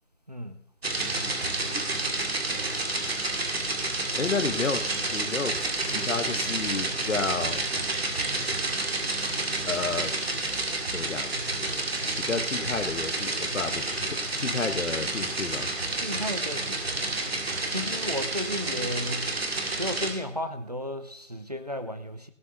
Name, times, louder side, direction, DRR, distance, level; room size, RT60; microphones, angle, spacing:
voice 1, 0.3-0.6 12.4-12.7 15.9-17.2 17.7-19.4 19.8-22.3, equal, 30° right, 8 dB, 0.7 m, -34 dB
sound 1, 0.8-20.1, right 2 dB, 50° right, 2.2 m, -30 dB
voice 2, 4.2-7.7 9.6-10.2 10.9-11.3 12.2-15.7, left 4 dB, 70° left, 11 dB, 1.3 m, -31 dB
16.5 x 6.7 x 6.6 m, 0.67 s
figure-of-eight pair, 175°, 38 cm